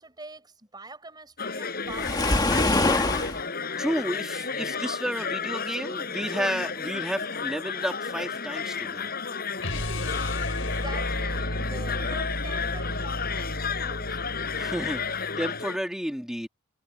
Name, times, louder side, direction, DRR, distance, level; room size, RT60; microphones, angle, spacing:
voice 1, 0.0-3.0 10.5-14.2, right 2 dB, 20° right, 6.6 m, -44 dB
sound 1, 1.4-15.8, left 5 dB, 50° left, 5.4 m, -32 dB
Waves surf, 1.9-3.4, left 2 dB, 20° left, 1.8 m, -23 dB
voice 2, 3.8-9.1 14.5-16.5, equal, 5° right, 2.8 m, -31 dB
sound 2, 9.6-15.6, left 1 dB, 75° left, 7.9 m, -33 dB
head